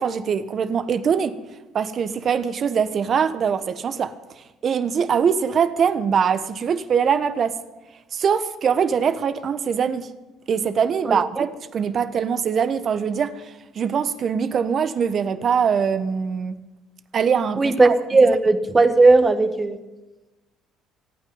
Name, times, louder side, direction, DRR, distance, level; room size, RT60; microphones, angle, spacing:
voice 1, 0.0-1.4 1.7-4.1 4.6-7.5 8.1-10.1 10.5-16.6 17.1-17.9 18.2-18.3, right 7 dB, 50° right, 1.2 m, -22 dB
voice 2, 11.0-11.4 17.6-19.8, right 3 dB, 25° right, 1.6 m, -17 dB
24.5 x 9.3 x 5.5 m
hypercardioid pair, 65°, 0 cm